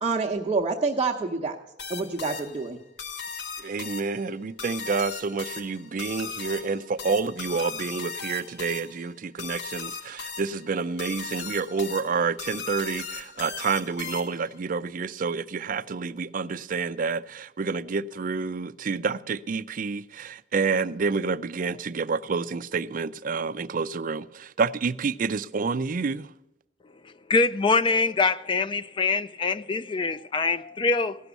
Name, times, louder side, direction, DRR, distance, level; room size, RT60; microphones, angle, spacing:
voice 1, 0.0-1.6 1.9-2.8, right 4 dB, 30° right, 0.9 m, -27 dB
sound 1, 1.8-14.6, left 5 dB, 70° left, 1.1 m, -38 dB
voice 2, 3.6-26.3, right 4 dB, 50° right, 0.4 m, -29 dB
voice 3, 27.3-31.2, left 4 dB, 25° left, 0.4 m, -24 dB
16.0 x 6.1 x 8.0 m
head